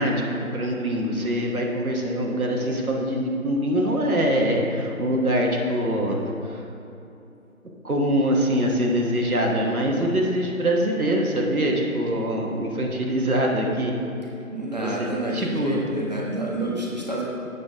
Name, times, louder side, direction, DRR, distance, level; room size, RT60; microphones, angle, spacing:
voice 1, 0.0-6.6 7.8-14.0 14.8-15.1 15.3-15.8, equal, 80° right, -1 dB, 1.4 m, -24 dB
voice 2, 14.5-17.2, right 1 dB, 30° right, -3 dB, 0.9 m, -29 dB
8.2 x 6.8 x 3.6 m, 2.7 s
figure-of-eight pair, 170°, 43 cm